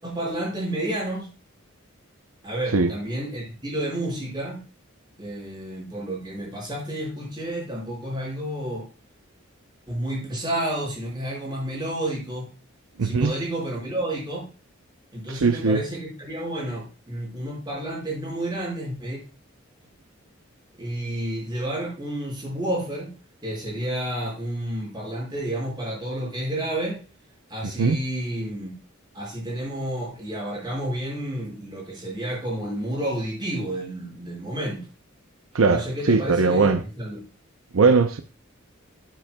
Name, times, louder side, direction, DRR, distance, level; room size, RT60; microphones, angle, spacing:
voice 1, 0.0-1.3 2.4-4.6 5.2-8.9 9.9-12.5 13.0-14.4 15.1-19.2 20.8-23.1 23.4-27.0 27.5-28.7 29.1-34.9 35.7-37.2, right 1 dB, 20° right, 4.8 m, -30 dB
voice 2, 13.0-13.3 15.3-15.8 27.8-28.0 35.5-36.8 37.7-38.2, right 4 dB, 85° right, 0.6 m, -20 dB
13.5 x 7.6 x 2.2 m
head